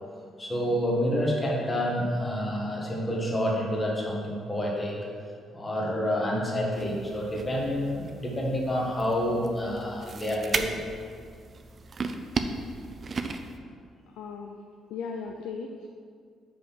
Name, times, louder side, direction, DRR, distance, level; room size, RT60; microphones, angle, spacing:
voice 1, 0.4-5.0 5.5-10.9, equal, 25° left, -3 dB, 1.7 m, -28 dB
sound 1, 6.7-13.6, right 4 dB, 40° right, 0.5 m, -36 dB
voice 2, 14.2-14.6 14.9-15.9, left 5 dB, 90° left, 2 dB, 0.4 m, -37 dB
5.5 x 5.2 x 5.8 m, 2.1 s
cardioid pair, 90°, 0 cm